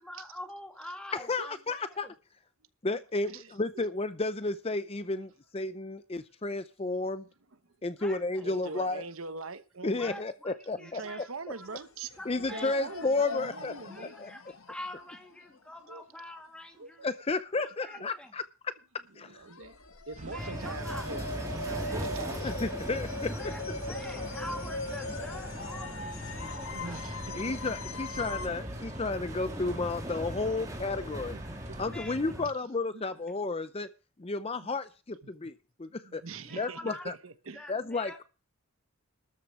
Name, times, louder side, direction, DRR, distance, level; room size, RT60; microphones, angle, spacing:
voice 1, 0.0-2.1 8.0-8.5 9.8-11.9 12.2-13.1 13.9-17.1 17.8-18.3 20.2-21.1 21.8-22.3 23.3-27.2 31.8-32.4 36.4-37.1 37.5-38.2, left 1 dB, 5° left, 2.3 m, -46 dB
voice 2, 1.2-2.1 2.8-7.2 7.8-9.0 9.8-11.0 12.3-14.3 17.0-18.7 19.1-19.4 22.4-23.5 27.4-31.4 31.8-33.9 34.2-35.5 35.8-36.2 36.6-37.1 37.7-38.2, left 3 dB, 30° left, 0.6 m, -32 dB
voice 3, 3.3-3.9 8.4-10.2 10.8-12.1 12.5-14.1 15.9-16.0 16.8-17.2 18.0-18.1 19.2-19.8 20.1-22.5 26.6-27.6 27.9-28.2 28.5-28.6 31.3-31.4 31.7-31.8 32.3-32.4 32.9-33.0 33.4-33.5 36.0-37.6, right 4 dB, 75° right, 1.1 m, -43 dB
sound 1, 11.6-11.8 12.1-15.6 19.5-28.5, left 3 dB, 80° left, 1.6 m, -41 dB
sound 2, 20.2-31.9, right 2 dB, 35° right, 1.4 m, -46 dB
sound 3, 20.4-32.5, equal, 15° right, 1.5 m, -40 dB
13.0 x 6.5 x 7.2 m
head